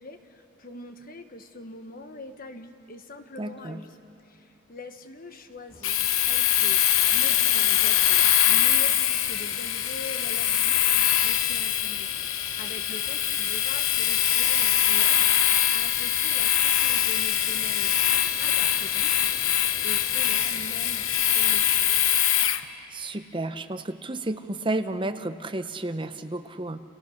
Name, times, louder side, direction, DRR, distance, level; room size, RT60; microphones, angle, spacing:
voice 1, 0.0-4.0 4.2-6.8 7.1-15.4 15.7-18.0 18.4-19.6 19.8-22.2, left 2 dB, 40° left, 7 dB, 1.3 m, -43 dB
voice 2, 3.4-3.8 22.9-26.8, right 2 dB, 20° right, 9 dB, 0.7 m, -32 dB
sound 1, 5.7-22.2, equal, 5° left, 3.7 m, -50 dB
Domestic sounds home sounds, 5.8-22.6, left 11 dB, 65° left, 0.9 m, -23 dB
29.5 x 28.0 x 6.5 m, 2.7 s
head